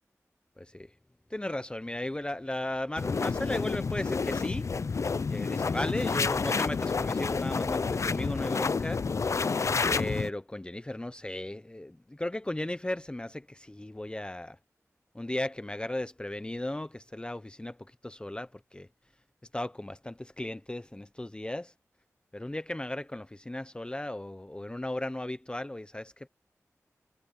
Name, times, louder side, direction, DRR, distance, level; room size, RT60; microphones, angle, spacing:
voice 1, 0.6-0.9 1.3-4.7 5.3-9.0 9.9-14.6 15.1-17.8 18.0-18.9 19.5-21.7 22.3-26.3, left 1 dB, 15° left, 0.7 m, -36 dB
sound 1, 3.0-10.3, left 4 dB, 65° left, 0.6 m, -29 dB
wide cardioid pair, 60°, 5 cm